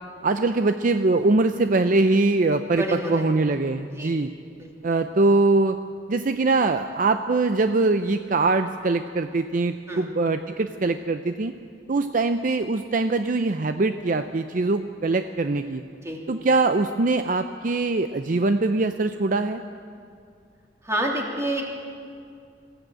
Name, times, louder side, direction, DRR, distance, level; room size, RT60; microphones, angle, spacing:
voice 1, 0.2-4.3 4.8-5.8 6.1-11.5 11.9-15.8 16.3-19.6, right 3 dB, 50° right, 8 dB, 0.6 m, -22 dB
voice 2, 2.7-3.3 3.9-4.2 4.6-5.0 9.9-10.1 16.0-16.2 20.8-21.6, right 1 dB, 15° right, -1 dB, 2.9 m, -29 dB
21.0 x 14.5 x 8.8 m, 2.3 s
head